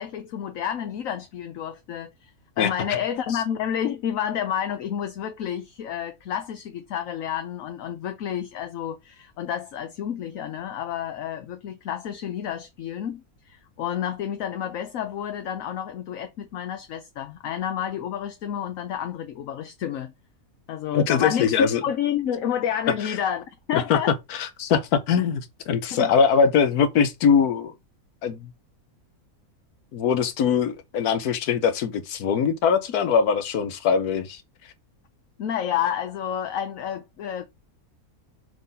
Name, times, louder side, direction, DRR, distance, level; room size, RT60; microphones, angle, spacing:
voice 1, 0.0-2.3 2.6-20.1 20.7-24.1 25.9-26.1 35.4-37.5, left 9 dB, 65° left, 1.1 m, -30 dB
voice 2, 20.9-21.8 23.0-23.1 23.7-24.0 24.3-27.7 28.2-28.5 29.9-34.4, left 6 dB, 85° left, 1.4 m, -22 dB
6.6 x 3.8 x 4.1 m
omnidirectional pair, 1.6 m